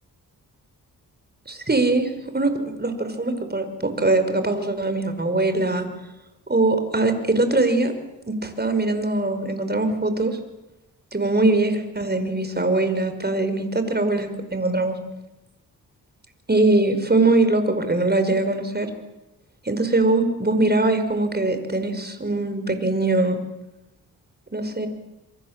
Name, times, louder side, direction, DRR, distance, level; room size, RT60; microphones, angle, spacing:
voice 1, 1.5-2.5 2.8-5.9 6.5-7.9 8.3-10.4 11.1-15.0 16.5-18.9 19.7-23.4 24.5-24.9, right 2 dB, 25° right, 8 dB, 5.5 m, -22 dB
27.0 x 24.5 x 7.6 m, 0.97 s
cardioid pair, 60°, 38 cm